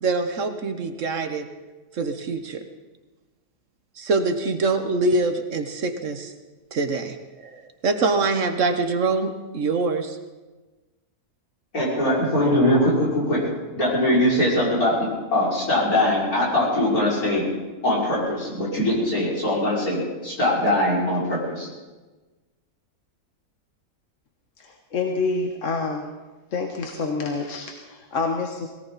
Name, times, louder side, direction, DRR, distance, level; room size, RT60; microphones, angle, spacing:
voice 1, 0.0-1.5 1.9-2.6 4.0-6.3 6.7-7.2 7.4-10.2, right 3 dB, 60° right, 7 dB, 1.4 m, -24 dB
voice 2, 11.7-13.4 13.7-17.4 17.8-21.7, left 1 dB, 80° left, -6 dB, 6.1 m, -22 dB
voice 3, 24.6-26.0 26.5-28.7, left 4 dB, 60° left, 3 dB, 1.5 m, -27 dB
19.5 x 18.0 x 4.1 m, 1.2 s
omnidirectional pair, 1.5 m